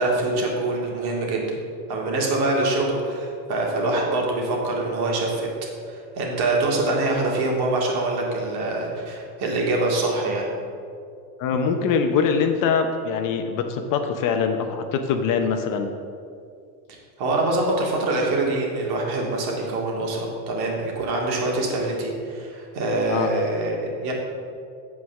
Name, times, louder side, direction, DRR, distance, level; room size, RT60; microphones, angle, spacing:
voice 1, 0.0-1.6 1.9-5.5 5.9-10.5 17.2-24.1, right 2 dB, 50° right, -1 dB, 2.4 m, -24 dB
voice 2, 11.4-15.9 23.1-23.3, left 6 dB, 40° left, 6 dB, 0.8 m, -23 dB
8.4 x 4.8 x 7.0 m, 2.3 s
supercardioid pair, 115°, 50 cm